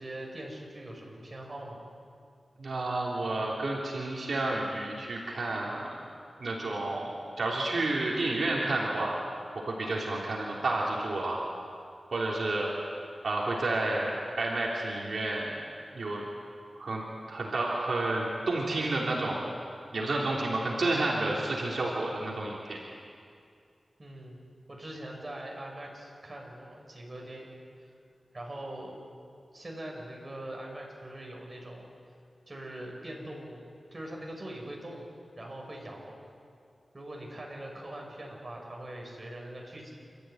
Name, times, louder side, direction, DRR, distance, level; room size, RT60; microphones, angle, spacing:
voice 1, 0.0-1.8 24.0-24.4 24.7-27.6 28.3-29.0 29.5-31.9 32.5-35.1 35.4-36.2 36.9-40.0, right 1 dB, 35° right, -1 dB, 5.9 m, -42 dB
voice 2, 2.6-5.9 6.4-7.1 7.4-9.1 9.5-11.4 12.1-12.7 13.2-15.5 15.9-16.2 16.7-19.4 19.9-22.8, right 2 dB, 75° right, -3 dB, 3.3 m, -30 dB
28.5 x 13.5 x 9.3 m, 2.4 s
wide cardioid pair, 75°, 0 cm